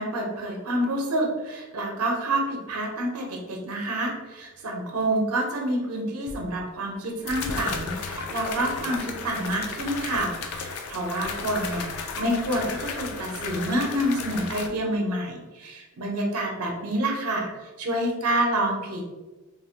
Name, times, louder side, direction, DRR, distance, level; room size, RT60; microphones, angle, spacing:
voice 1, 0.0-11.9 12.2-19.1, right 1 dB, 80° right, 0 dB, 0.6 m, -28 dB
sound 1, 6.3-6.4 7.3-14.7, left 4 dB, 75° left, 0.4 m, -34 dB
sound 2, 8.1-8.3 10.1-10.3 12.1-12.3 13.7-13.8, right 1 dB, 20° right, 0.4 m, -38 dB
3.5 x 2.0 x 2.7 m, 1.2 s
head